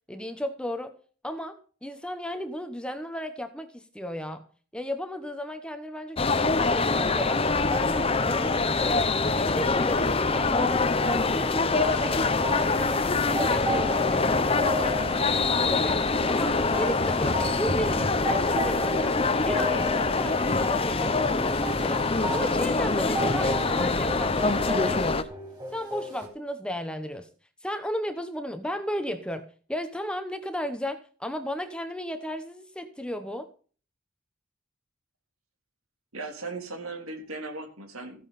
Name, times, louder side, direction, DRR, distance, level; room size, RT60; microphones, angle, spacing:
voice 1, 0.1-0.9 1.2-4.4 4.7-7.4 7.7-9.1 9.3-16.0 16.3-19.2 19.4-21.3 21.6-25.3 25.7-27.3 27.6-33.5, equal, 5° left, 8 dB, 1.0 m, -35 dB
sound 1, 6.2-25.2, left 3 dB, 25° left, 0.7 m, -25 dB
sound 2, 11.7-26.3, equal, 20° right, 4.3 m, -35 dB
voice 2, 36.1-38.3, right 3 dB, 75° right, 5 dB, 3.4 m, -37 dB
15.0 x 10.5 x 4.2 m, 0.39 s
head